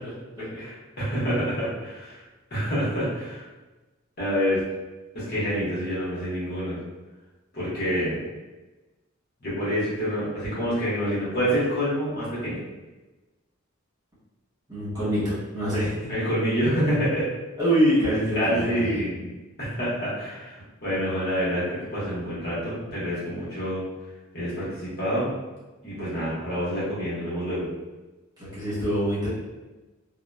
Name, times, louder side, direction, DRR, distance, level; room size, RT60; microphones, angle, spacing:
voice 1, 0.5-2.2 2.5-3.4 4.2-4.6 5.1-6.8 7.5-8.2 9.4-12.6 16.1-17.3 18.3-19.1 19.6-23.8 24.3-25.3 25.8-27.7, equal, 50° left, -9 dB, 1.0 m, -27 dB
voice 2, 14.7-16.1 17.6-19.3 28.4-29.3, equal, 20° right, -12 dB, 1.3 m, -25 dB
2.8 x 2.1 x 2.2 m, 1.1 s
head